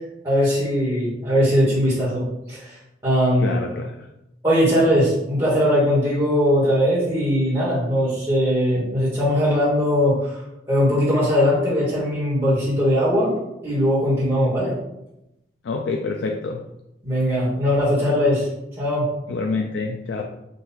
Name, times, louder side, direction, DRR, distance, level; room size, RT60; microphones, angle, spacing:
voice 1, 0.2-2.8 3.0-3.6 4.4-10.4 10.7-13.3 13.6-14.7 17.0-18.5 18.8-19.0, equal, 25° right, -9 dB, 1.6 m, -20 dB
voice 2, 3.4-3.9 15.6-16.6 19.3-20.2, left 3 dB, 75° left, 3 dB, 0.4 m, -26 dB
4.0 x 2.6 x 4.1 m, 0.87 s
head